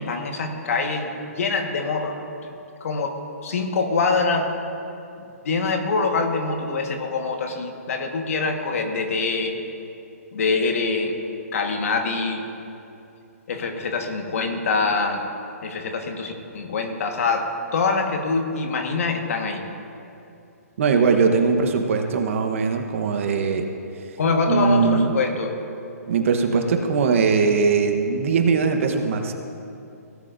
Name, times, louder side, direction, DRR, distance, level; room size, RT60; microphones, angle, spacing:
voice 1, 0.0-2.5 2.8-3.2 3.4-4.5 5.4-9.5 10.3-11.2 11.5-12.4 13.5-15.2 15.6-19.7 24.2-25.5, left 4 dB, 60° left, 4 dB, 1.5 m, -24 dB
voice 2, 20.8-23.6 24.5-25.1 26.1-29.3, right 5 dB, 55° right, 5 dB, 1.1 m, -20 dB
17.5 x 10.0 x 2.7 m, 2.6 s
hypercardioid pair, 150°, 9 cm